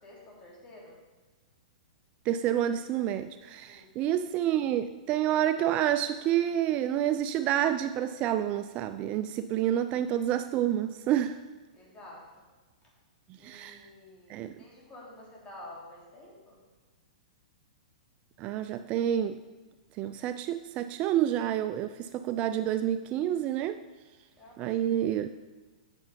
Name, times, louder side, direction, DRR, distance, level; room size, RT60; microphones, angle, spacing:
voice 1, 0.0-1.0 3.7-3.9 11.7-12.5 12.8-12.9 13.4-16.6 24.4-24.8, left 1 dB, 20° left, -3 dB, 3.1 m, -50 dB
voice 2, 2.3-11.4 13.4-13.8 14.3-14.5 18.4-19.4 20.0-23.8 24.6-25.3, right 11 dB, 30° right, 10 dB, 0.3 m, -28 dB
8.3 x 6.8 x 5.2 m, 1.3 s
hypercardioid pair, 135°, 4 cm